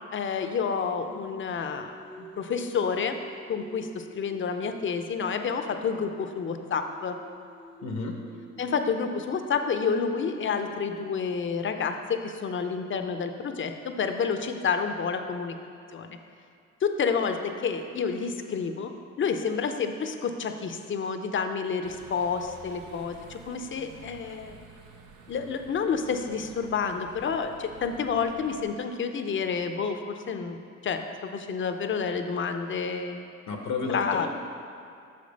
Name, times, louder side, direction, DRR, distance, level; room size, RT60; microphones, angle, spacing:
voice 1, 0.1-3.2 3.5-7.2 8.6-15.6 15.9-16.2 16.8-18.9 19.2-24.6 25.3-33.2 33.9-34.3, left 5 dB, 40° left, 7 dB, 0.6 m, -29 dB
Singing, 1.0-5.3 5.6-11.6, right 1 dB, 5° right, 0.6 m, -49 dB
voice 2, 7.8-8.1 33.5-34.3, left 4 dB, 70° left, 3 dB, 0.8 m, -31 dB
sound 1, 21.8-28.6, right 5 dB, 85° right, 0.8 m, -50 dB
6.3 x 5.1 x 5.2 m, 2.4 s
cardioid pair, 90°, 30 cm